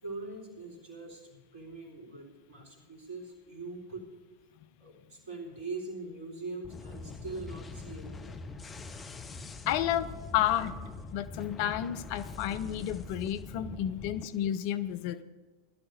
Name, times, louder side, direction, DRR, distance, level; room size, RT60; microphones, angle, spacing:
voice 1, 0.0-4.1 4.8-8.4, right 3 dB, 50° right, -2 dB, 3.8 m, -42 dB
sound 1, 6.6-14.3, left 3 dB, 15° left, 0.8 m, -43 dB
voice 2, 9.7-10.7 11.1-15.2, left 11 dB, 45° left, 12 dB, 0.4 m, -31 dB
19.0 x 12.0 x 2.7 m, 1.3 s
figure-of-eight pair, 90°, 0 cm